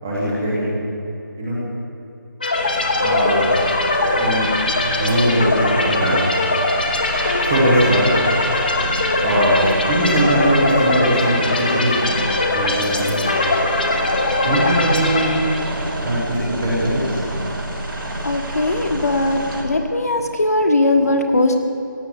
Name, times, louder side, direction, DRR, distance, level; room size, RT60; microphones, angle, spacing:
voice 1, 0.0-0.7 1.4-1.6 3.0-3.5 4.1-4.5 5.0-6.2 7.4-8.1 9.2-9.6 9.9-12.1 12.5-13.4 14.4-17.2, right 1 dB, 5° right, -7 dB, 0.7 m, -20 dB
sound 1, 2.4-16.0, left 2 dB, 25° left, 1.1 m, -21 dB
sound 2, 2.5-19.6, right 1 dB, 85° right, 3.8 m, -29 dB
voice 2, 18.2-21.6, left 2 dB, 50° left, 5 dB, 1.6 m, -19 dB
16.0 x 9.3 x 8.4 m, 2.9 s
figure-of-eight pair, 180°, 11 cm